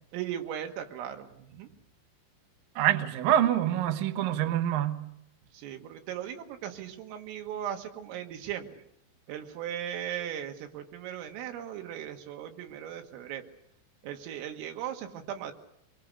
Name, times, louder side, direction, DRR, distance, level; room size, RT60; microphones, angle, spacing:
voice 1, 0.1-1.7 5.5-8.8 9.3-13.5 14.0-15.5, right 10 dB, 90° right, 4.2 m, -38 dB
voice 2, 2.8-5.0, right 11 dB, 70° right, 2.2 m, -26 dB
23.5 x 22.0 x 6.7 m
omnidirectional pair, 5.7 m